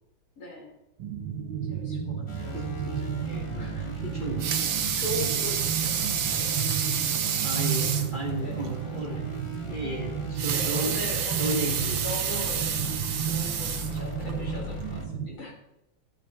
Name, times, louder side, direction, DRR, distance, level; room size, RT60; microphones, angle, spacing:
voice 1, 0.4-0.7 1.6-4.2 4.9-6.7 8.3-8.6 10.5-12.7 13.2-15.6, left 1 dB, 75° left, -3 dB, 4.6 m, -40 dB
sound 1, 1.0-15.3, right 7 dB, 70° right, 1.8 m, -33 dB
sound 2, 2.3-15.1, left 2 dB, 25° left, 0.7 m, -41 dB
voice 2, 3.3-3.7 4.0-5.3 7.4-9.2 9.7-11.1 11.4-12.1, right 1 dB, 25° right, -1 dB, 1.9 m, -34 dB
Water tap faucet / Sink (filling or washing) / Liquid, 4.2-8.2 8.6-8.7 9.0-9.1 10.2-14.4 15.0-15.1, right 8 dB, 90° right, 2.0 m, -29 dB
14.0 x 9.0 x 4.3 m, 0.90 s
omnidirectional pair, 2.3 m